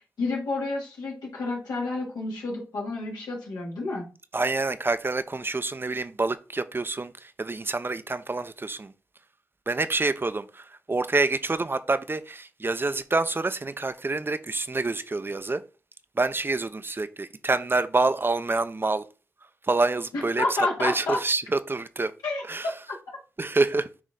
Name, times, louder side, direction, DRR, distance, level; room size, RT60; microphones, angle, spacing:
voice 1, 0.2-4.1 20.1-21.2 22.2-22.4, left 2 dB, 80° left, 2.8 m, -29 dB
voice 2, 4.3-8.9 9.7-15.6 16.2-19.0 19.7-20.4 20.8-22.1 22.5-22.7 23.4-23.9, right 3 dB, 35° right, 0.7 m, -27 dB
9.2 x 3.1 x 3.9 m
supercardioid pair, 40°, 7 cm